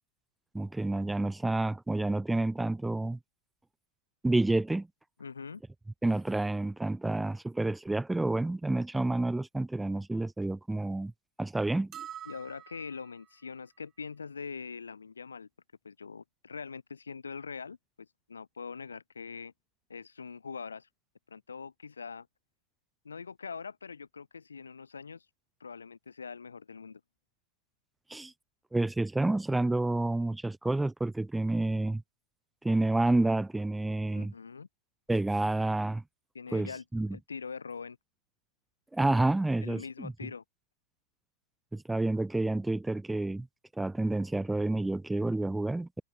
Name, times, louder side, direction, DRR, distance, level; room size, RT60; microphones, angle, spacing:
voice 1, 0.5-3.2 4.2-4.9 6.0-11.1 11.4-11.9 28.1-28.3 28.7-32.0 32.6-34.3 35.1-36.0 36.5-37.2 38.9-40.1 41.7-43.5 43.8-46.0, right 2 dB, 5° right, 1.0 m, -29 dB
voice 2, 5.2-5.6 12.2-15.5 15.8-19.5 19.9-20.9 21.3-22.3 23.0-25.3 25.6-27.0 34.1-34.7 36.3-36.8 37.1-38.0 39.6-40.4, left 5 dB, 75° left, 7.7 m, -43 dB
sound 1, 11.9-13.3, right 10 dB, 30° right, 2.9 m, -46 dB
figure-of-eight pair, 90°, 0 cm